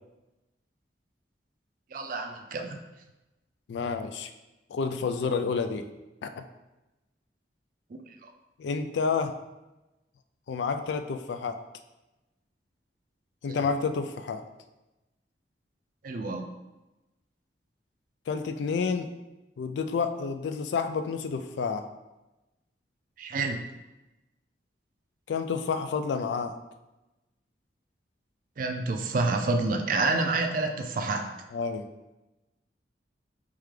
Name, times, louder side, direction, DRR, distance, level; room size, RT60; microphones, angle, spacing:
voice 1, 1.9-2.8 8.2-8.3 13.5-13.6 16.0-16.4 23.2-23.6 28.6-31.3, right 3 dB, 50° right, 4 dB, 0.4 m, -28 dB
voice 2, 3.7-4.3 4.7-5.9 6.2-6.4 8.6-9.4 10.5-11.6 13.4-14.4 18.3-19.1 19.6-21.9 25.3-26.6 31.5-31.9, left 5 dB, 80° left, 8 dB, 0.3 m, -29 dB
3.6 x 3.3 x 3.2 m, 1.0 s
head